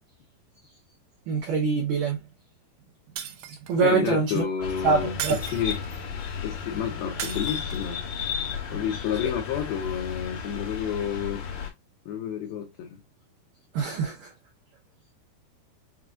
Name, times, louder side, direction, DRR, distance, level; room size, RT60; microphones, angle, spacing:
voice 1, 1.3-2.2 3.7-4.4 4.8-5.4 13.7-14.2, right 4 dB, 75° right, 2.0 m, -24 dB
Shatter, 3.2-3.9 5.2-6.0 7.2-8.0, right 9 dB, 90° right, 2.0 m, -36 dB
voice 2, 3.8-5.8 6.4-8.0 8.7-11.4 12.1-13.0, left 8 dB, 90° left, 2.0 m, -30 dB
sound 1, 4.6-11.7, left 7 dB, 70° left, 1.8 m, -34 dB
6.5 x 2.4 x 2.4 m
omnidirectional pair, 5.1 m